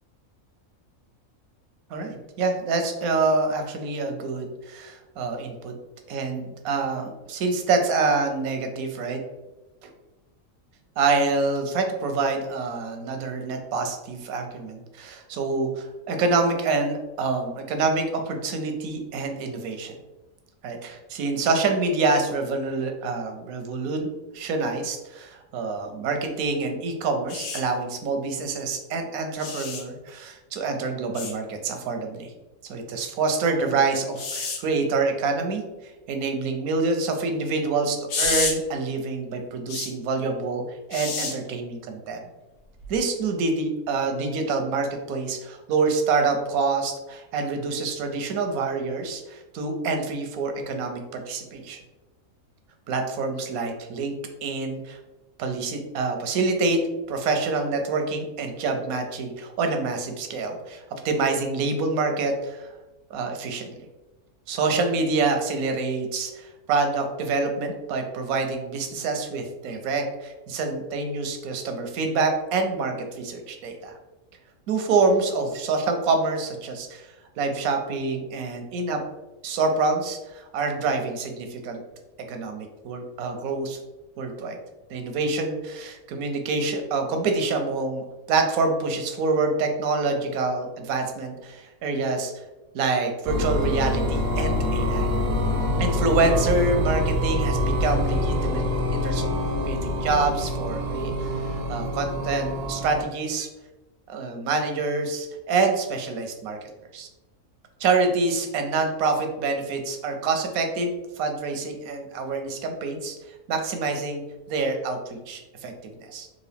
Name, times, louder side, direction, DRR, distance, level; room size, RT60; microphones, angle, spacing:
voice 1, 1.9-5.7 6.1-9.2 11.0-20.0 20.6-32.3 32.7-42.2 42.9-51.8 52.9-54.1 54.4-55.0 55.4-56.8 57.1-62.7 63.1-63.7 64.5-74.0 74.7-79.0 79.4-81.8 82.3-83.8 84.2-84.6 84.9-92.4 92.7-95.1 95.8-98.6 98.9-99.3 99.7-103.5 104.1-106.6 106.9-107.1 107.8-110.9 111.2-113.1 113.5-114.2 114.5-116.3, right 3 dB, 85° right, 5 dB, 1.1 m, -26 dB
sound 1, 27.3-27.6 29.4-29.8 31.1-31.3 34.2-34.6 38.1-38.5 39.7-39.9 40.9-41.3 42.8-43.0, left 4 dB, 70° left, 1.1 m, -28 dB
sound 2, 93.3-103.0, left 1 dB, 65° right, 0.6 m, -25 dB
3.7 x 2.5 x 3.4 m, 1.1 s
omnidirectional pair, 1.5 m